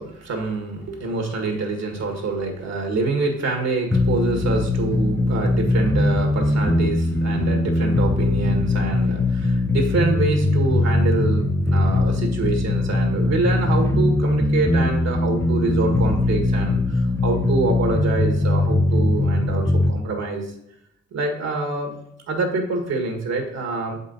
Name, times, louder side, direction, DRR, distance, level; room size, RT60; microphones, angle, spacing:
voice 1, 0.0-20.5 21.1-21.9 22.3-24.0, right 3 dB, 60° right, 3 dB, 1.6 m, -26 dB
sound 1, 3.9-19.9, left 2 dB, 10° left, 0.5 m, -21 dB
7.1 x 5.4 x 4.0 m, 0.77 s
cardioid pair, 90°, 30 cm